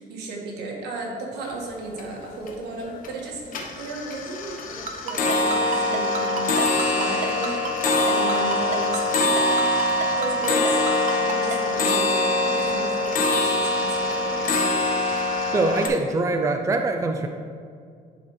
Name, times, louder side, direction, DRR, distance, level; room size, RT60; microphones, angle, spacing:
voice 1, 0.0-7.7 8.0-9.6 10.1-14.6, right 3 dB, 75° right, -1 dB, 1.6 m, -35 dB
sound 1, 1.5-1.6 1.9-2.5 2.9-3.2 3.5-15.9, left 2 dB, 55° left, 1.1 m, -23 dB
Ringtone, 4.9-11.6, right 6 dB, 45° right, 0.7 m, -30 dB
voice 2, 15.5-17.3, right 2 dB, 20° right, 5 dB, 0.4 m, -23 dB
11.0 x 4.4 x 3.2 m, 2.2 s
cardioid pair, 110°, 17 cm